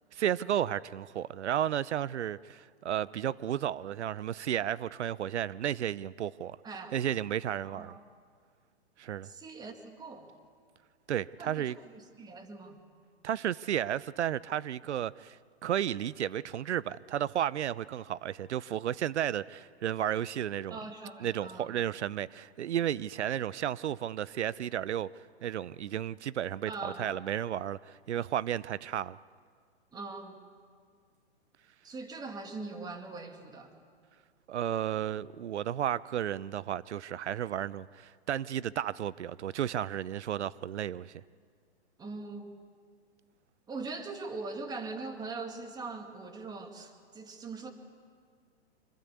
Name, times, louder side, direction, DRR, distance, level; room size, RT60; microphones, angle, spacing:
voice 1, 0.1-6.6 6.9-7.9 9.0-9.3 11.1-11.8 13.2-20.8 21.2-25.1 25.4-29.2 34.5-41.2, right 10 dB, 85° right, 0.6 m, -33 dB
voice 2, 6.6-7.0 7.6-8.0 9.2-10.3 11.4-12.8 20.7-21.8 26.7-27.2 29.9-30.4 31.8-33.7 42.0-42.6 43.7-47.7, right 3 dB, 10° right, 2.1 m, -41 dB
25.5 x 23.5 x 8.3 m
hypercardioid pair, 140°, 33 cm